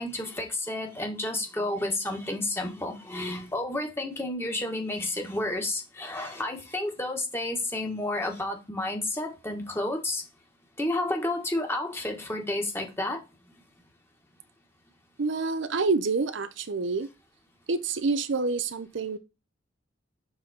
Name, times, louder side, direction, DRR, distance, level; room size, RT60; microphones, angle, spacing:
voice 1, 0.0-10.2 10.8-13.2, left 1 dB, 10° left, 1.5 m, -31 dB
voice 2, 15.2-17.1 17.7-19.2, right 4 dB, 70° right, 0.6 m, -27 dB
6.9 x 4.0 x 4.2 m
head